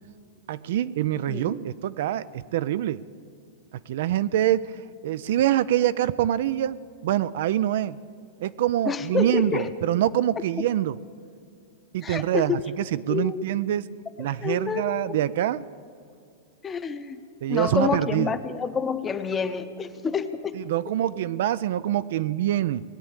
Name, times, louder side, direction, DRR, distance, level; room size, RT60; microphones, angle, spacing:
voice 1, 0.5-3.0 3.9-4.7 5.0-8.0 8.4-11.0 11.9-12.6 12.9-13.8 14.2-15.6 17.4-18.4 20.7-22.8, right 12 dB, 65° right, 15 dB, 0.4 m, -25 dB
voice 2, 1.3-1.6 8.8-9.7 12.0-12.6 13.1-13.5 14.3-15.2 16.6-17.2 17.5-20.5, left 6 dB, 20° left, 10 dB, 0.9 m, -28 dB
19.5 x 8.3 x 8.9 m, 2.4 s
hypercardioid pair, 135°, 0 cm